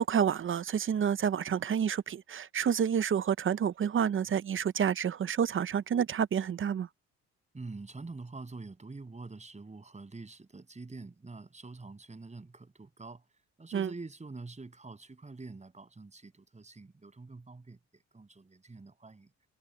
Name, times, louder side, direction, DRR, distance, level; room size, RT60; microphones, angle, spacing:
voice 1, 0.0-6.9 13.7-13.9, right 8 dB, 45° right, 0.7 m, -29 dB
voice 2, 7.5-13.2 13.6-17.8 18.1-19.3, right 3 dB, 25° right, 6.8 m, -46 dB
cardioid pair, 90°, 30 cm